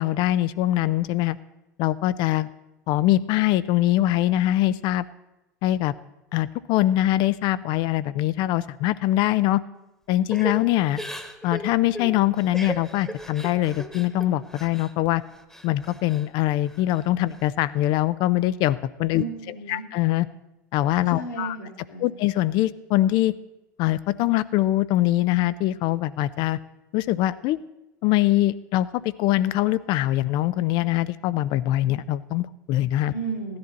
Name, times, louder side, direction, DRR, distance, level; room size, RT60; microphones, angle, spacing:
voice 1, 0.0-1.4 1.8-2.5 2.9-5.0 5.6-5.9 6.3-9.6 10.1-11.0 11.4-15.2 15.6-19.2 19.7-20.3 20.7-21.6 22.0-23.3 23.8-26.6 26.9-27.6 28.0-33.1, left 15 dB, 50° left, 17 dB, 0.5 m, -23 dB
Crying sobbing / Breathing, 10.3-14.9 15.3-16.3 16.7-17.4, right 1 dB, 5° left, 1.3 m, -37 dB
voice 2, 19.1-19.9 21.1-22.2 33.1-33.6, right 4 dB, 85° left, -2 dB, 2.8 m, -34 dB
15.5 x 10.5 x 4.1 m, 0.94 s
hypercardioid pair, 80°, 10 cm